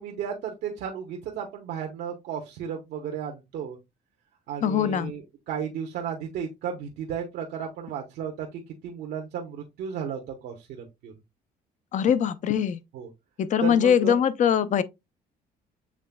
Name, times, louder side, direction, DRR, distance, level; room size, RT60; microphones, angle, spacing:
voice 1, 0.0-3.8 4.5-11.1 12.9-13.1 13.6-14.2, right 7 dB, 75° right, 0.9 m, -34 dB
voice 2, 4.6-5.1 11.9-12.8 13.4-14.8, left 8 dB, 45° left, 0.5 m, -22 dB
7.3 x 3.2 x 2.2 m
cardioid pair, 110°, 17 cm